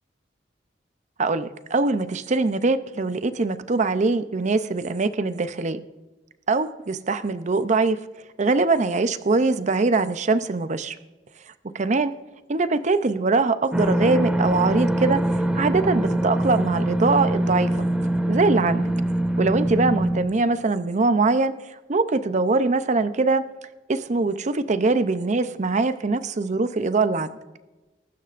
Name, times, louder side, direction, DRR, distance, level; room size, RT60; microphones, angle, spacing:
voice 1, 1.2-5.8 6.5-8.0 8.4-11.0 11.6-12.1 12.5-17.9 18.3-18.9 19.4-21.5 21.9-23.4 23.9-27.3, right 3 dB, 40° right, 12 dB, 0.6 m, -22 dB
sound 1, 13.7-20.2, right 1 dB, 5° right, 0.9 m, -23 dB
21.5 x 12.5 x 2.5 m, 1.1 s
head